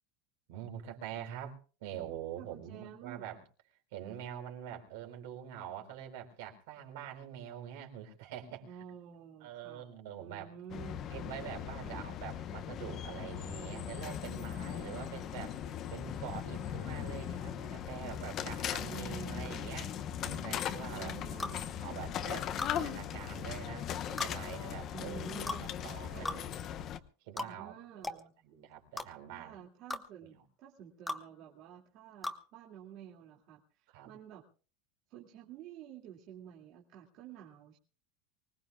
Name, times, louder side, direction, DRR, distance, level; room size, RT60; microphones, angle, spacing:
voice 1, 0.5-3.4 3.9-8.7 9.4-10.5 11.1-15.5 15.9-19.9 20.2-21.2 21.8-25.3 25.8-26.5 27.2-27.7 28.1-29.6 30.2-30.4 33.9-34.1, right 10 dB, 70° right, 4.2 m, -45 dB
voice 2, 2.4-3.3 8.6-9.9 10.2-11.0 11.8-12.0 15.0-15.2 18.9-20.0 20.8-22.1 24.9-25.7 26.1-26.3 27.4-28.3 29.3-34.4 35.1-37.8, right 8 dB, 50° right, 2.4 m, -50 dB
sound 1, 10.7-27.0, left 9 dB, 35° left, 0.9 m, -39 dB
sound 2, 21.4-21.6 22.6-22.8 24.2-24.3 25.5-25.6 26.2-26.4 27.4-27.5 28.0-28.2 29.0-29.1 29.9-30.0 31.1-31.2 32.2-32.4, left 2 dB, 5° left, 1.2 m, -37 dB
24.5 x 19.0 x 2.4 m
supercardioid pair, 140°, 0 cm